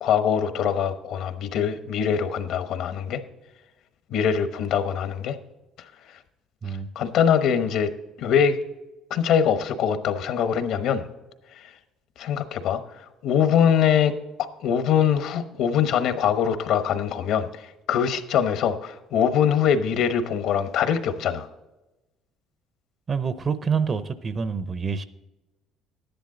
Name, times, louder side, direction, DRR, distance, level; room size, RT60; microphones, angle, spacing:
voice 1, 0.0-3.2 4.1-5.4 6.9-7.9 8.2-8.6 9.1-11.0 12.2-12.8 13.2-14.1 14.6-21.5, left 8 dB, 65° left, 10 dB, 1.0 m, -23 dB
voice 2, 23.1-25.0, right 6 dB, 30° right, 13 dB, 0.6 m, -27 dB
11.0 x 10.5 x 3.8 m, 1.0 s
cardioid pair, 140°, 0 cm